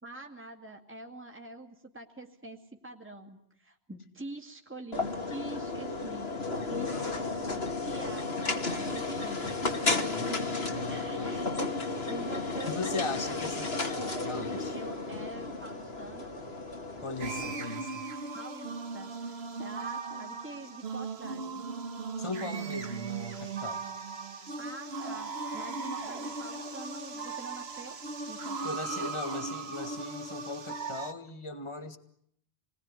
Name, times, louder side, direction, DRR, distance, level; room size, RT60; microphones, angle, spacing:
voice 1, 0.0-6.3 6.7-10.4 10.8-13.4 14.7-16.3 18.0-21.6 24.6-28.0 28.3-28.7 29.0-29.1, right 2 dB, 10° right, 2 dB, 2.4 m, -46 dB
sound 1, 4.9-17.6, left 3 dB, 70° left, 2.6 m, -33 dB
voice 2, 10.2-11.3 12.7-14.8 17.0-18.1 22.2-23.8 28.6-32.0, left 3 dB, 30° left, 8 dB, 1.9 m, -38 dB
sound 2, 17.2-31.1, right 4 dB, 75° right, 1.7 m, -38 dB
28.0 x 20.5 x 9.9 m, 0.72 s
omnidirectional pair, 1.1 m